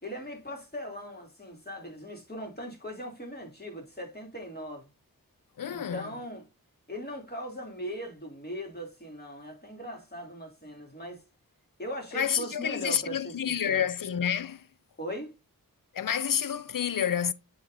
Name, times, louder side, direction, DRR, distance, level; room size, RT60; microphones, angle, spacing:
voice 1, 0.0-4.9 5.7-6.5 6.9-11.2 11.8-13.9 15.0-15.3, equal, 25° left, 3.0 m, -39 dB
voice 2, 5.6-6.0 12.1-14.6 15.9-17.3, left 8 dB, 65° left, 0.6 m, -29 dB
7.8 x 5.8 x 2.7 m
wide cardioid pair, 45°, 36 cm